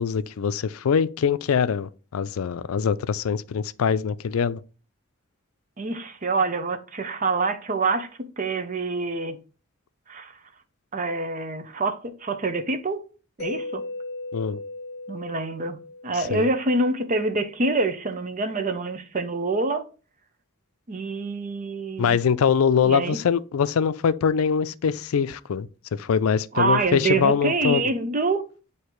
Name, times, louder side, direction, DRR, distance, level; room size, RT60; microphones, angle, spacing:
voice 1, 0.0-4.6 14.3-14.6 16.1-16.5 22.0-27.9, left 7 dB, 90° left, 0.4 m, -23 dB
voice 2, 5.8-9.4 10.1-10.4 10.9-13.1 13.4-13.8 15.1-15.8 16.0-19.9 20.9-22.2 22.8-23.2 26.5-28.5, right 3 dB, 40° right, 0.7 m, -26 dB
Mallet percussion, 13.4-17.2, left 2 dB, 50° left, 0.8 m, -37 dB
8.2 x 2.8 x 4.5 m
head